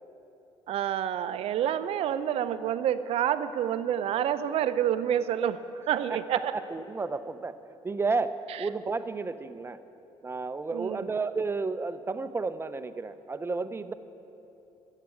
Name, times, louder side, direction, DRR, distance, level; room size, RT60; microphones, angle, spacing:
voice 1, 0.7-5.6 5.9-6.5 10.7-11.0, right 10 dB, 70° right, 12 dB, 0.6 m, -28 dB
voice 2, 5.9-7.6 7.8-9.8 10.2-13.9, right 4 dB, 25° right, 12 dB, 0.6 m, -32 dB
12.0 x 7.4 x 9.7 m, 2.9 s
cardioid pair, 90°, 11 cm